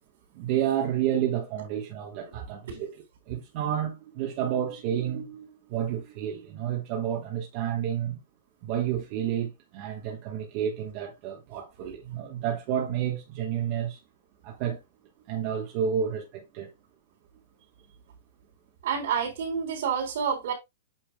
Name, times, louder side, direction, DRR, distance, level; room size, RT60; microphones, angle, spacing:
voice 1, 0.3-8.2 8.6-14.0 14.4-14.8 15.3-16.7, right 9 dB, 35° right, 1.3 m, -30 dB
voice 2, 2.4-2.8 18.8-20.5, right 7 dB, 60° right, 3.6 m, -29 dB
8.8 x 5.5 x 2.3 m
supercardioid pair, 175°, 0 cm